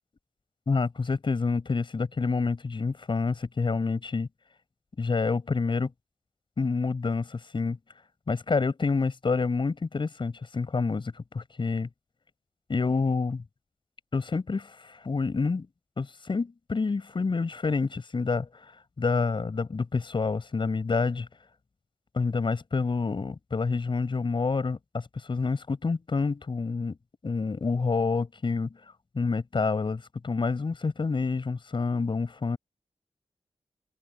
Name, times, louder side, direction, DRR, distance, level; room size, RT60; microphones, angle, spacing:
voice 1, 0.7-4.3 5.0-5.9 6.6-7.8 8.3-11.9 12.7-13.4 14.1-15.7 16.0-18.7 19.0-21.3 22.1-27.0 27.2-28.7 29.2-32.6, left 4 dB, 50° left, 7.1 m, -28 dB
wide cardioid pair, 105°, 11 cm